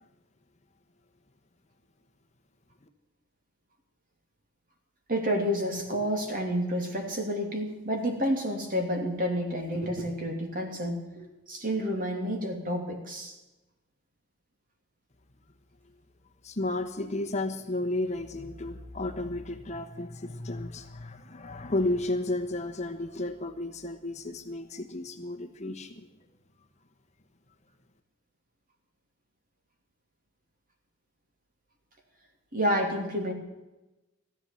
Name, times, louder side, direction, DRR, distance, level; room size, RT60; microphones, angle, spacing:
voice 1, 5.1-13.3 32.5-33.3, equal, 45° right, 3 dB, 2.9 m, -29 dB
voice 2, 16.4-26.1, left 2 dB, 35° left, 6 dB, 1.1 m, -33 dB
14.5 x 11.5 x 7.1 m, 1.1 s
head